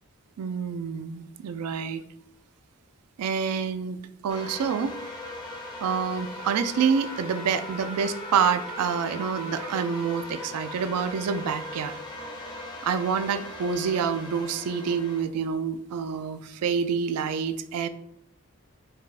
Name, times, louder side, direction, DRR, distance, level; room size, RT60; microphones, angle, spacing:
voice 1, 0.4-2.0 3.2-4.0 4.2-5.0 5.8-11.9 12.8-17.9, right 6 dB, 90° right, 11 dB, 0.4 m, -27 dB
sound 1, 4.3-15.2, left 1 dB, 20° left, 0.7 m, -38 dB
5.1 x 3.4 x 2.4 m, 0.75 s
head